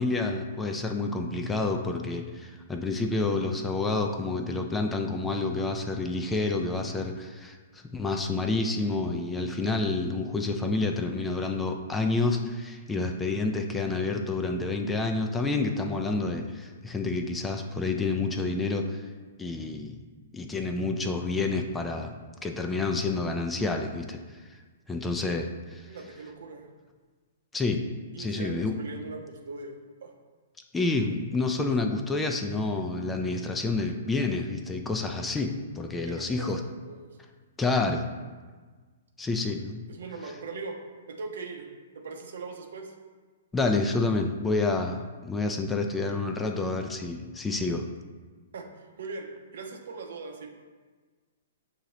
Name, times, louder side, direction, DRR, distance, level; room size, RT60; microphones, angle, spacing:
voice 1, 0.0-19.0 19.4-20.0 20.3-22.2 22.4-24.2 24.9-25.9 27.5-27.8 28.2-28.7 30.7-36.6 37.6-38.1 39.2-39.8 43.5-47.8, left 3 dB, 10° left, 3 dB, 0.4 m, -29 dB
voice 2, 25.9-26.7 28.1-30.1 33.5-33.7 36.1-36.5 36.8-37.1 39.6-40.8 41.1-41.7 41.9-42.9 48.5-49.3 49.5-50.5, right 4 dB, 70° right, 3 dB, 0.7 m, -40 dB
6.4 x 2.8 x 3.0 m, 1.4 s
hypercardioid pair, 125°, 0 cm